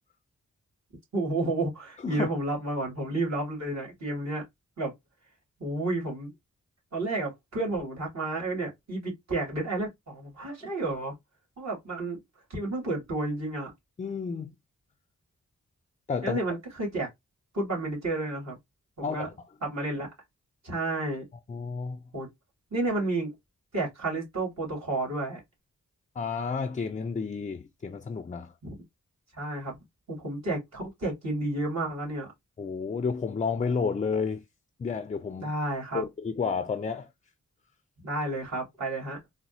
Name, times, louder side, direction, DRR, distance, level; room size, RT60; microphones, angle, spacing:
voice 1, 1.1-4.4 4.8-4.9 5.6-6.3 6.9-11.1 11.6-12.2 12.5-13.7 16.2-17.1 17.5-18.6 19.0-19.3 19.6-20.1 20.6-21.3 22.1-22.3 22.7-23.3 23.7-25.4 28.6-28.8 29.3-29.8 30.1-32.3 35.4-36.0 38.0-39.2, right 2 dB, 65° right, 2.4 m, -31 dB
voice 2, 14.0-14.5 16.1-16.4 19.0-19.3 21.5-22.0 26.2-28.5 32.6-34.4 34.8-35.5 35.9-37.1, left 5 dB, 25° left, 0.3 m, -31 dB
4.0 x 2.1 x 2.7 m
cardioid pair, 70°, 30 cm